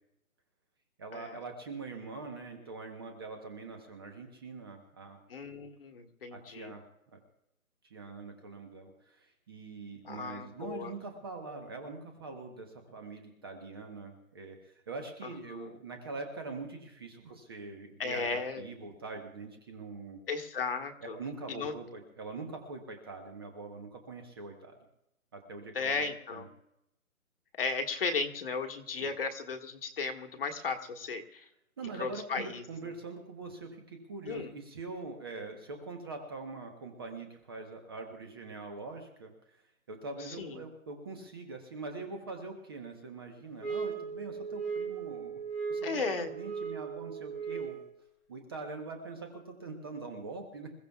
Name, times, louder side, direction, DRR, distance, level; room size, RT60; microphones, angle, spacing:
voice 1, 1.0-5.2 6.3-6.8 7.1-7.2 7.9-20.2 21.1-24.7 25.3-26.0 26.3-26.5 29.0-29.1 31.8-39.6 39.9-45.4 45.7-47.8 48.3-50.7, right 3 dB, 15° right, 4 dB, 1.0 m, -43 dB
voice 2, 5.3-6.7 10.0-10.9 15.5-15.7 18.0-18.7 20.3-21.2 21.5-21.7 25.7-26.5 27.6-31.4 32.0-32.6 34.3-34.5 40.3-40.6 45.8-46.3, left 4 dB, 40° left, 5 dB, 1.5 m, -35 dB
sound 1, 43.6-48.0, right 6 dB, ahead, 1.2 m, -37 dB
27.0 x 15.5 x 2.3 m, 0.83 s
hypercardioid pair, 160°, 44 cm